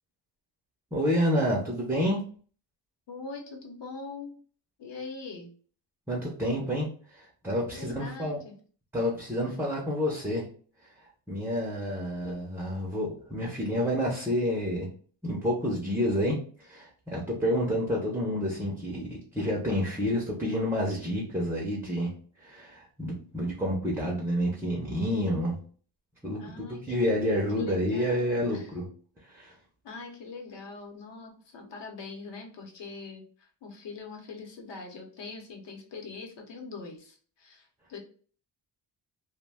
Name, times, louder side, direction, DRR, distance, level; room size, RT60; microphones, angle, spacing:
voice 1, 0.9-2.2 6.1-8.4 8.9-10.4 10.8-10.9 11.3-14.9 15.2-22.1 22.4-25.6 26.2-28.8 29.2-29.5, equal, 5° right, -3 dB, 0.3 m, -29 dB
voice 2, 3.1-4.4 4.8-5.5 7.7-8.5 9.4-9.5 26.4-27.0 27.5-28.7 29.8-38.0, left 4 dB, 70° left, 2 dB, 0.8 m, -42 dB
2.3 x 2.1 x 3.3 m, 0.44 s
wide cardioid pair, 175°, 45 cm